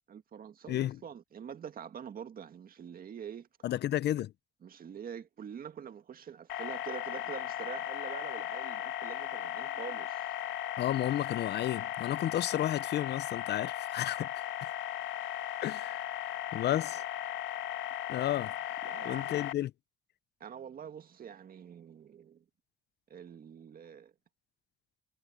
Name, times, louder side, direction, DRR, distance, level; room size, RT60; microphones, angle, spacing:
voice 1, 0.1-3.5 4.6-10.4 16.6-17.0 18.2-18.5 18.8-19.5 20.4-22.4 23.1-24.1, right 8 dB, 50° right, 1.9 m, -46 dB
voice 2, 3.6-4.3 10.8-14.5 15.6-17.0 18.1-18.8 19.0-19.7, left 12 dB, 60° left, 0.6 m, -32 dB
sound 1, 6.5-19.5, left 12 dB, 80° left, 1.8 m, -37 dB
cardioid pair, 100°, 19 cm